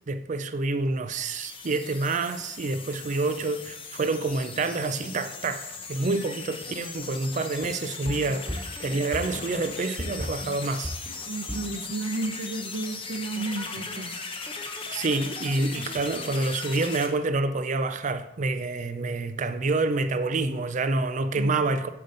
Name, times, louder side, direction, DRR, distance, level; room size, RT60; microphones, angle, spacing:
voice 1, 0.1-11.0 14.9-21.9, right 3 dB, 40° right, 0.4 m, -28 dB
sound 1, 1.1-17.1, left 4 dB, 30° left, 0.7 m, -38 dB
sound 2, 7.6-11.8, equal, 5° right, 1.5 m, -35 dB
voice 2, 11.3-14.2 21.3-21.5, right 2 dB, 70° right, 0.8 m, -32 dB
6.8 x 5.2 x 3.9 m
head